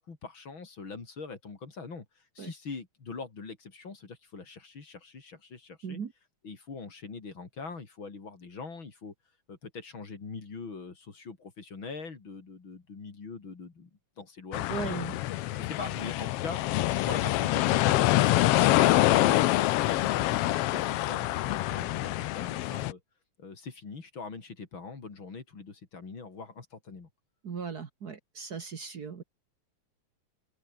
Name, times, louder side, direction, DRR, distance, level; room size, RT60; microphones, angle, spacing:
voice 1, 0.0-2.1 2.4-6.0 6.4-9.1 9.5-13.9 14.2-15.0 15.5-16.6 17.0-18.0 18.8-23.0 23.4-27.1, left 4 dB, 40° left, 4.0 m, -42 dB
sound 1, 14.5-22.9, left 16 dB, 85° left, 1.3 m, -26 dB
voice 2, 14.7-15.2 27.4-29.2, right 6 dB, 45° right, 1.4 m, -37 dB
open air
omnidirectional pair, 3.5 m